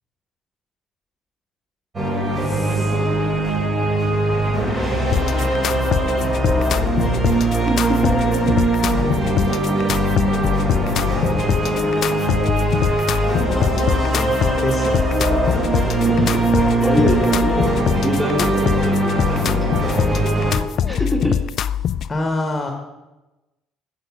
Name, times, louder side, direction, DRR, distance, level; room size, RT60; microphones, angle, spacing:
sound 1, 1.9-20.6, right 1 dB, 35° right, 3.4 m, -20 dB
voice 1, 2.4-3.0 7.8-8.5 10.2-11.6 13.4-15.0 22.1-22.7, left 2 dB, 25° left, 4 dB, 1.3 m, -29 dB
sound 2, 5.1-22.1, left 9 dB, 55° left, 0.3 m, -23 dB
voice 2, 7.7-8.6 16.1-16.4 16.8-17.7 18.0-20.0 20.8-21.4, equal, 5° right, 1 dB, 1.9 m, -24 dB
8.0 x 7.6 x 6.0 m, 1.0 s
supercardioid pair, 80°, 0 cm